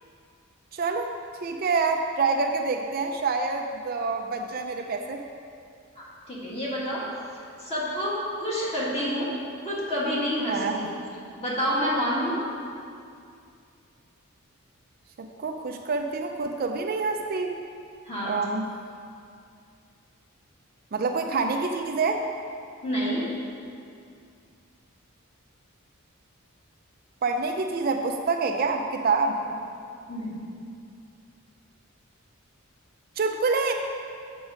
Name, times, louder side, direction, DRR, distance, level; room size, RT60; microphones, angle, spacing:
voice 1, 0.7-1.1 1.4-5.3 10.5-10.8 15.2-17.6 18.2-18.7 20.9-22.2 27.2-29.4 33.2-33.7, right 4 dB, 45° right, 4 dB, 0.4 m, -27 dB
voice 2, 6.0-7.1 7.6-8.1 8.4-9.3 9.6-10.9 11.4-12.4 18.1-18.4 22.8-23.2 30.1-30.4, equal, 30° left, -7 dB, 1.9 m, -28 dB
7.2 x 6.1 x 5.0 m, 2.4 s
head